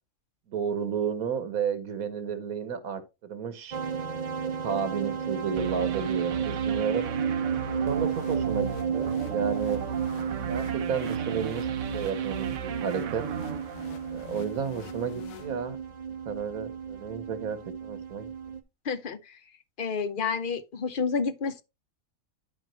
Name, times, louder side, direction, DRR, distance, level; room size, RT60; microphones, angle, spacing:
voice 1, 0.5-3.8 4.4-7.1 7.7-9.9 10.5-11.7 11.9-13.2 14.1-15.8 16.3-18.3, right 7 dB, 85° right, 1.6 m, -32 dB
sound 1, 3.7-18.6, right 7 dB, 40° right, 0.6 m, -32 dB
sound 2, 5.6-14.6, right 8 dB, 65° right, 1.0 m, -36 dB
sound 3, 7.9-16.0, left 9 dB, 75° left, 1.1 m, -48 dB
voice 2, 18.9-19.4 19.8-21.6, left 5 dB, 50° left, 0.6 m, -30 dB
11.5 x 4.9 x 3.0 m
omnidirectional pair, 1.5 m